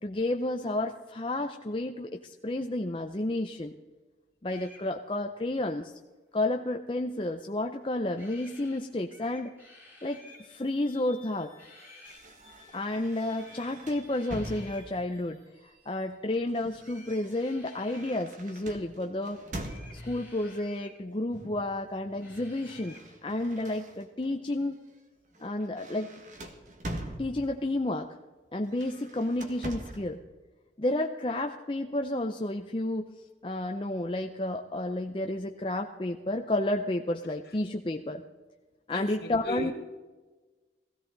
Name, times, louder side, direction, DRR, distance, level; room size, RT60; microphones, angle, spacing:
voice 1, 0.0-3.7 4.4-5.9 6.3-9.5 10.0-11.5 12.7-15.4 15.9-19.4 19.9-23.0 23.2-24.8 25.4-26.1 27.2-28.1 28.5-30.2 30.8-33.1 33.4-38.2 38.9-39.7, left 1 dB, 30° left, 4 dB, 0.6 m, -31 dB
sound 1, 4.5-4.8 8.1-8.8 9.1-10.4 11.6-12.2 13.4-13.7 14.1-14.9 16.8-18.3 19.6-21.0 22.2-23.1, left 2 dB, 10° right, 3.5 m, -53 dB
sound 2, 9.9-16.6, left 1 dB, 60° right, 5.0 m, -59 dB
sound 3, 12.1-15.2 16.1-20.3 21.3-21.7 22.0-24.3 24.8-25.0 25.3-27.7 28.6-30.2, right 1 dB, 45° right, 1.7 m, -43 dB
voice 2, 38.9-39.7, right 1 dB, 60° left, 3 dB, 2.0 m, -37 dB
17.0 x 15.5 x 4.0 m, 1.2 s
head